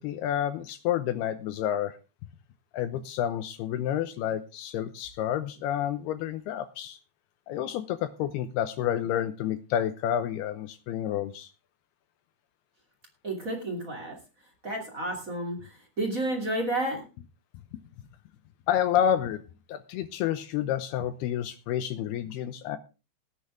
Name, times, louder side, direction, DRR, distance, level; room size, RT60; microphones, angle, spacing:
voice 1, 0.0-2.0 2.7-7.0 7.5-11.5 18.7-19.4 19.7-22.8, left 10 dB, 85° left, 11 dB, 2.3 m, -29 dB
voice 2, 13.2-14.2 14.6-15.6 16.0-17.0, right 1 dB, 25° right, 3 dB, 2.1 m, -30 dB
17.0 x 9.9 x 3.6 m, 0.31 s
omnidirectional pair, 5.5 m